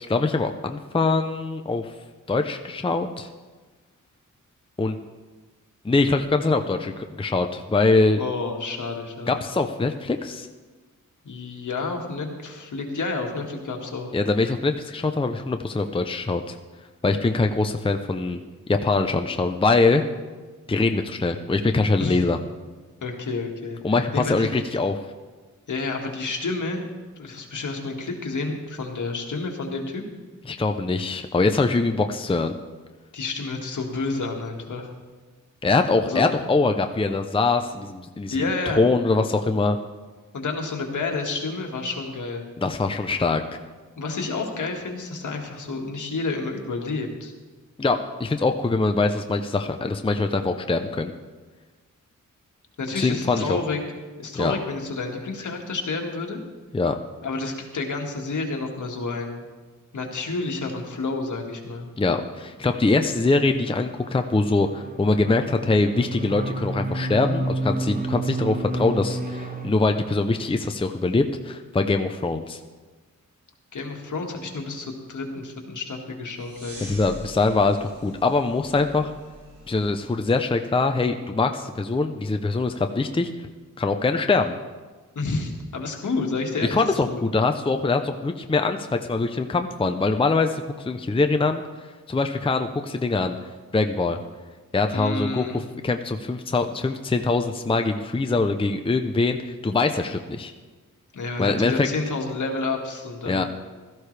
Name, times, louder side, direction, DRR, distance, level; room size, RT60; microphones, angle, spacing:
voice 1, 0.1-1.9 2.3-3.3 4.8-5.0 5.8-8.2 9.3-10.5 14.1-16.6 17.0-18.4 18.7-20.0 20.7-22.4 23.8-25.0 30.5-32.5 35.6-39.8 42.6-43.6 47.8-51.1 52.9-53.6 54.3-54.6 56.7-56.9 62.0-72.6 76.9-79.1 79.7-83.3 83.8-84.6 86.7-91.6 92.1-93.4 93.7-94.2 94.7-100.5 101.4-101.9 103.3-103.4, left 3 dB, 15° left, 6 dB, 0.6 m, -23 dB
voice 2, 8.2-9.3 11.2-14.1 22.0-22.2 23.0-23.8 24.1-24.5 25.7-26.8 27.2-30.0 33.1-34.9 36.1-36.3 38.3-38.8 40.3-42.5 44.0-47.3 52.8-53.8 54.2-56.4 57.2-59.4 59.9-61.9 73.7-76.9 85.2-86.8 87.1-87.2 94.9-95.6 101.1-103.5, left 3 dB, 70° left, 2 dB, 1.9 m, -30 dB
sound 1, 62.9-69.7, right 2 dB, 25° right, 1.2 m, -31 dB
sound 2, 76.3-80.8, right 1 dB, 50° right, 4.0 m, -45 dB
16.0 x 13.5 x 3.3 m, 1.3 s
wide cardioid pair, 105°, 31 cm